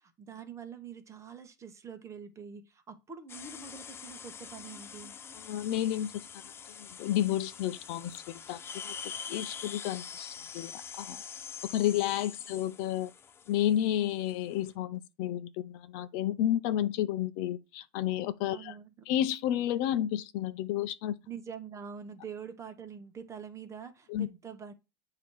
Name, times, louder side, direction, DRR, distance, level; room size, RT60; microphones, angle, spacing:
voice 1, 0.0-5.2 18.5-19.1 21.3-24.7, right 7 dB, 20° right, 1.1 m, -45 dB
sound 1, 3.3-14.7, left 7 dB, 20° left, 0.4 m, -45 dB
voice 2, 5.3-6.1 6.7-8.9 9.3-11.2 11.7-13.1 13.5-18.8 19.1-21.1 24.1-24.3, left 12 dB, 55° left, 0.6 m, -31 dB
8.4 x 2.9 x 4.6 m
supercardioid pair, 125°, 13 cm